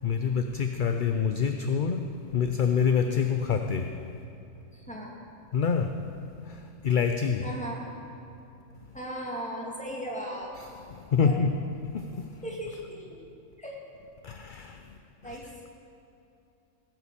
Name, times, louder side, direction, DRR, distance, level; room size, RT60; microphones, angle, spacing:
voice 1, 0.0-2.0 2.3-4.0 5.5-6.0 6.4-7.5 10.9-11.5 11.9-12.3 14.2-14.9 15.2-15.4, left 6 dB, 50° left, 6 dB, 0.6 m, -26 dB
voice 2, 4.7-5.1 7.4-7.8 8.9-10.5 11.2-11.4 12.4-13.2 13.6-13.8 15.2-15.5, equal, 5° left, -3 dB, 2.2 m, -37 dB
17.5 x 7.9 x 6.7 m, 2.8 s
omnidirectional pair, 1.3 m